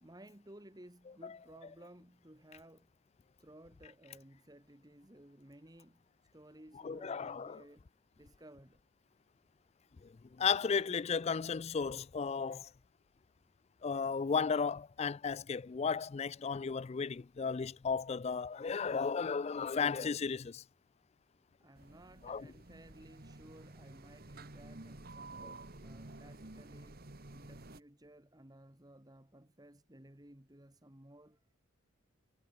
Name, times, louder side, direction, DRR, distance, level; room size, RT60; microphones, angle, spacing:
voice 1, 0.0-2.9 3.4-6.1 6.3-7.9 8.2-8.8 21.6-25.4 25.8-31.4, right 1 dB, 20° right, 1.9 m, -57 dB
voice 2, 6.8-7.6 10.0-12.7 13.8-20.6 22.2-22.5 25.4-25.6, left 5 dB, 30° left, 0.3 m, -34 dB
sound 1, 21.8-27.8, right 2 dB, 45° right, 1.7 m, -51 dB
head